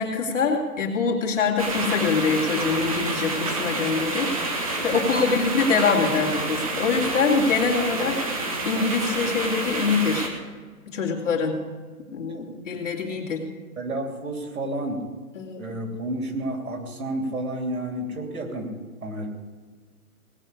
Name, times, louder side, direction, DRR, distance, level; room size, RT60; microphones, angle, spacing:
voice 1, 0.0-10.3 10.9-11.6 12.1-13.5 15.4-15.7, left 4 dB, 55° left, -1 dB, 2.8 m, -24 dB
sound 1, 1.6-10.3, right 2 dB, 25° right, 1.2 m, -28 dB
voice 2, 12.7-13.0 13.8-15.0 15.6-18.7 19.0-19.3, right 1 dB, 70° right, 3 dB, 3.1 m, -31 dB
18.5 x 6.6 x 8.2 m, 1.5 s
hypercardioid pair, 170°, 45 cm